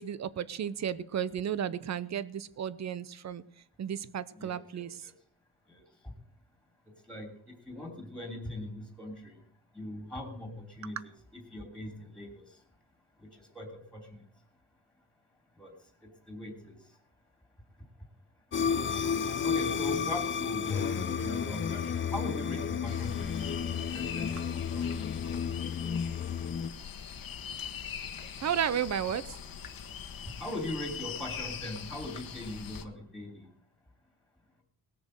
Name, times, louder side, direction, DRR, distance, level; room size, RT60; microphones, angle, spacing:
voice 1, 0.0-3.4 3.8-5.0 24.8-25.0 28.4-29.4, right 9 dB, 45° right, 16 dB, 0.8 m, -33 dB
voice 2, 4.3-5.1 5.7-6.1 7.1-9.4 9.7-12.4 13.2-14.2 15.6-15.7 16.3-16.8 19.4-23.5 23.9-24.4 24.7-24.8 30.4-33.5, left 1 dB, 5° left, 3 dB, 3.2 m, -41 dB
sound 1, 18.5-26.7, left 7 dB, 30° left, 0.6 m, -32 dB
sound 2, 22.8-32.8, left 7 dB, 65° left, 1.3 m, -42 dB
19.0 x 6.8 x 6.5 m, 0.63 s
wide cardioid pair, 150°, 37 cm